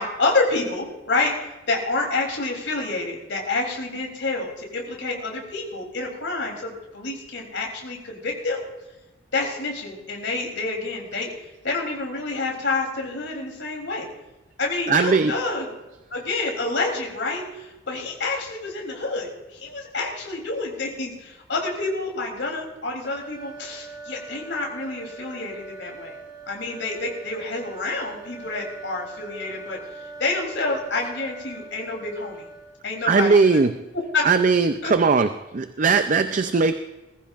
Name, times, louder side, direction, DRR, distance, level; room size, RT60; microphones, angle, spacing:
voice 1, 0.0-8.6 9.3-11.3 11.6-14.1 14.6-15.7 16.1-26.2 26.5-29.8 30.2-32.4 32.8-33.6 34.1-34.3 34.8-34.9, left 3 dB, 80° left, 0 dB, 3.3 m, -28 dB
voice 2, 14.9-15.4 33.1-33.8 34.2-36.8, right 4 dB, 45° right, 9 dB, 0.5 m, -19 dB
sound 1, 23.0-33.0, right 3 dB, 20° right, 1.4 m, -42 dB
20.5 x 15.0 x 2.5 m, 1.1 s
head